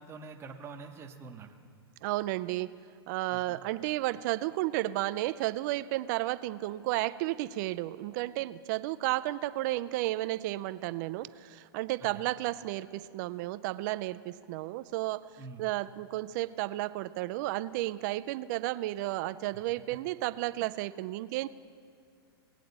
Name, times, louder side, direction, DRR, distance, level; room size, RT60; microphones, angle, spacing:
voice 1, 0.0-1.5 3.3-3.6 12.0-12.3 15.4-15.7 19.5-19.6 20.6-20.7, right 4 dB, 20° right, 3 dB, 0.9 m, -46 dB
voice 2, 2.0-2.7 3.1-15.3 15.6-21.5, right 17 dB, 45° right, 15 dB, 0.4 m, -32 dB
20.0 x 8.3 x 4.0 m, 2.3 s
hypercardioid pair, 125°, 13 cm